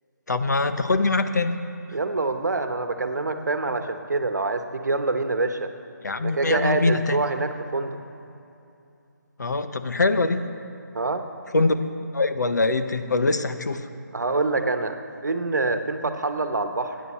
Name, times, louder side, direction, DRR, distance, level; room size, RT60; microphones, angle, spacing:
voice 1, 0.3-1.6 6.0-7.2 9.4-10.4 11.5-11.8 12.1-13.9, left 3 dB, 65° left, 9 dB, 0.9 m, -23 dB
voice 2, 1.9-5.7 6.2-8.0 10.9-11.3 14.1-15.0 15.2-17.0, right 3 dB, 65° right, 8 dB, 1.1 m, -26 dB
19.5 x 9.6 x 4.3 m, 2.7 s
figure-of-eight pair, 150°, 10 cm